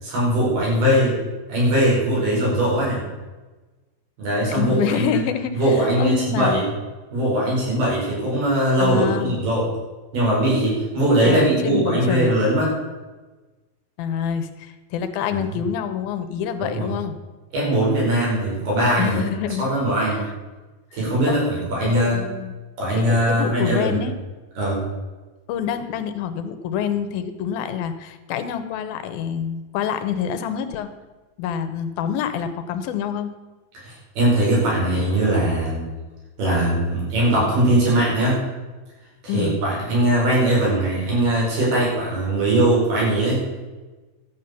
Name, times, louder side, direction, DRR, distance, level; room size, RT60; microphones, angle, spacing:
voice 1, 0.0-1.2 1.5-3.0 4.2-5.2 5.5-6.7 7.1-9.7 10.1-12.7 15.3-15.4 16.6-16.9 17.5-19.2 19.6-20.3 20.9-22.2 22.8-24.0 24.6-24.8 33.8-35.8 36.4-38.4 39.2-43.4, right 1 dB, 80° right, -6 dB, 7.3 m, -20 dB
voice 2, 4.5-6.6 8.8-9.4 11.3-12.4 14.0-17.2 19.0-19.7 20.0-20.2 21.3-21.4 21.8-22.5 23.0-24.2 25.5-30.9 31.4-33.3 39.3-39.6, left 8 dB, 75° left, 9 dB, 2.5 m, -27 dB
12.5 x 8.3 x 6.9 m, 1.2 s
omnidirectional pair, 4.4 m